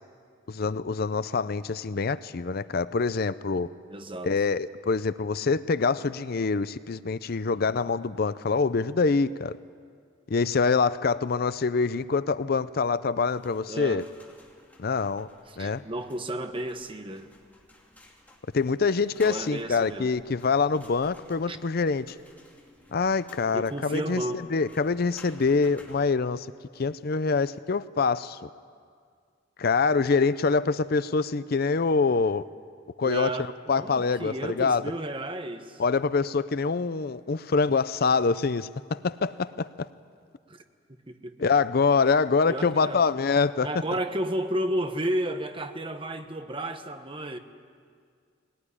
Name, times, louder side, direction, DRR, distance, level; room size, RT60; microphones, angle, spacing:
voice 1, 0.5-3.7 4.2-9.6 10.3-14.0 14.8-15.3 15.6-15.8 18.5-22.2 22.9-24.2 24.5-26.5 26.8-28.5 29.6-32.4 33.0-33.4 33.7-34.8 35.8-39.9 41.4-43.8, left 4 dB, 50° left, 0.5 m, -25 dB
voice 2, 3.9-4.3 13.7-14.1 15.5-17.3 19.2-20.1 21.5-21.6 23.5-24.4 33.0-33.5 33.8-35.8 40.5-40.6 41.1-41.4 42.5-43.0 43.6-47.4, right 1 dB, 25° right, 1.2 m, -32 dB
sound 1, 13.2-26.1, left 1 dB, 10° left, 2.7 m, -54 dB
21.0 x 19.5 x 9.9 m
head